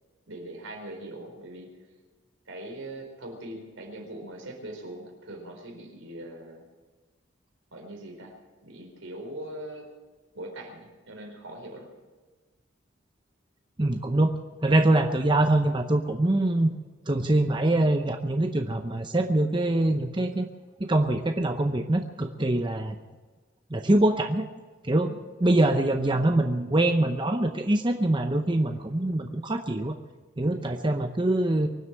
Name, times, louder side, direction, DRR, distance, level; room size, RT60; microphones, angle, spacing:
voice 1, 0.3-1.8 2.5-6.6 7.7-9.9 10.3-11.9 25.0-25.2, right 1 dB, 80° right, 2 dB, 4.3 m, -41 dB
voice 2, 13.8-14.3 14.6-16.7 17.1-20.5 20.8-23.0 23.7-24.4 24.8-25.1 25.4-30.0 30.4-31.7, right 1 dB, 25° right, 5 dB, 0.7 m, -24 dB
23.5 x 8.0 x 7.6 m, 1.3 s
head